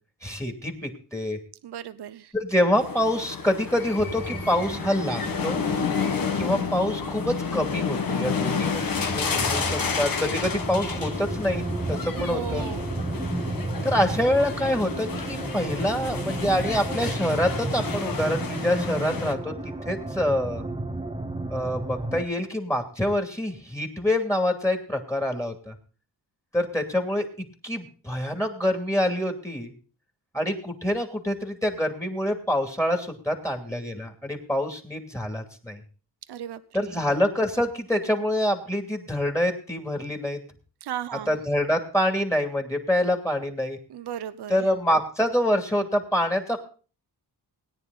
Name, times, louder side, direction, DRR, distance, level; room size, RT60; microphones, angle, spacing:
voice 1, 0.2-1.4 2.3-5.6 6.3-12.6 13.8-20.6 21.5-25.7 26.5-27.3 27.6-29.7 30.3-35.8 36.7-40.4 41.3-43.8 44.5-46.6, left 1 dB, 5° left, 3 dB, 2.6 m, -26 dB
voice 2, 1.6-2.3 12.2-12.9 36.3-37.1 40.8-41.4 43.9-44.7, right 10 dB, 75° right, 13 dB, 0.8 m, -36 dB
sound 1, 2.7-19.3, left 5 dB, 55° left, 1.6 m, -31 dB
sound 2, 4.0-22.2, right 2 dB, 15° right, 1.1 m, -33 dB
18.0 x 9.8 x 4.0 m, 0.39 s
cardioid pair, 75°, 40 cm